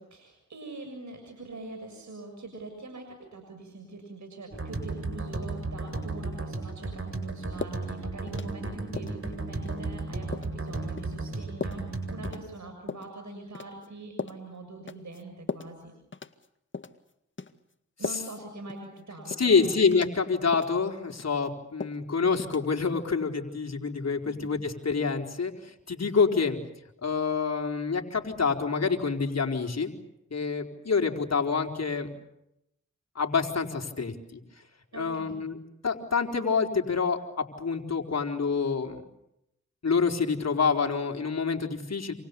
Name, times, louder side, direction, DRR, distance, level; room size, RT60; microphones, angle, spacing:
voice 1, 0.0-15.9 18.0-19.8 24.2-24.5 34.9-35.4, right 2 dB, 65° right, 5 dB, 7.1 m, -43 dB
sound 1, 4.5-12.3, right 3 dB, 45° right, 7.5 m, -34 dB
sound 2, 7.6-7.8 8.3-8.7 9.0-9.2 9.7-9.8 10.3-10.6 11.0-11.1 11.6-11.8 12.2-12.4 12.9-13.1 13.5-13.9 14.2-14.4 14.9-15.2 15.5-15.7 16.1-16.5 16.7-17.0 17.4-17.5 18.0-18.4 18.7-18.8 19.3-19.5 19.9-20.2 20.5-20.7 21.1-21.5 21.8-22.0 22.4-22.6, left 4 dB, 40° left, 1.9 m, -37 dB
voice 2, 19.4-26.6 27.0-29.9 30.3-32.1 33.1-34.4 34.9-35.6 35.8-39.0 39.8-42.1, left 5 dB, 55° left, 3 dB, 4.4 m, -27 dB
28.0 x 28.0 x 7.0 m, 0.83 s
cardioid pair, 45°, 30 cm